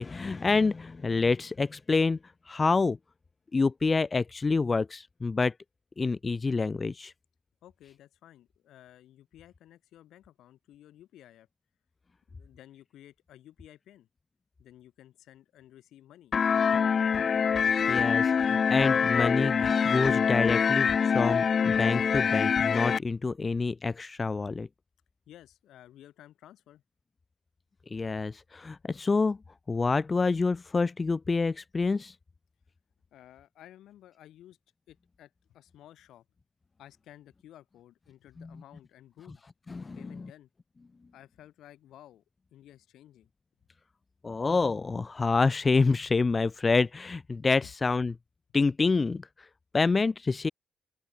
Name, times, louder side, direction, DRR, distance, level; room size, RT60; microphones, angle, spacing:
voice 1, 0.0-2.2 2.5-3.0 3.5-5.5 6.0-7.1 17.9-24.7 27.9-29.4 29.7-32.1 38.4-38.5 39.7-40.2 44.2-48.1 48.5-49.2 49.7-50.5, left 4 dB, 30° left, 0.8 m, -27 dB
voice 2, 7.6-11.5 12.3-14.1 14.6-16.9 25.3-26.8 33.1-34.6 34.9-36.2 36.8-39.4 39.9-40.5 41.1-42.2 42.5-43.3 47.6-47.7, left 12 dB, 90° left, 7.8 m, -54 dB
sound 1, 16.3-23.0, left 6 dB, 55° left, 1.2 m, -25 dB
open air
cardioid pair, 85°, 0 cm